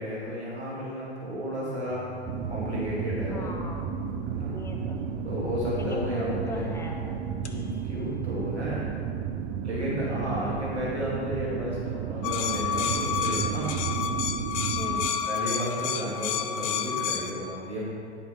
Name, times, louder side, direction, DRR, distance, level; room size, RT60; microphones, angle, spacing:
voice 1, 0.0-2.0 2.5-3.5 4.3-4.5 5.2-6.8 7.4-8.8 9.6-13.7 15.2-17.9, equal, 85° right, -7 dB, 2.4 m, -33 dB
sound 1, 1.9-8.9, left 11 dB, 85° left, 0.8 m, -43 dB
sound 2, 2.3-15.1, right 8 dB, 25° right, 0.4 m, -33 dB
voice 2, 3.3-3.9 4.5-5.2 5.8-7.2 10.0-10.6 14.8-15.3, left 1 dB, 10° left, 1 dB, 0.8 m, -37 dB
sound 3, 12.2-17.3, left 7 dB, 30° left, 0.5 m, -29 dB
10.5 x 5.7 x 4.5 m, 2.3 s
figure-of-eight pair, 95°, 33 cm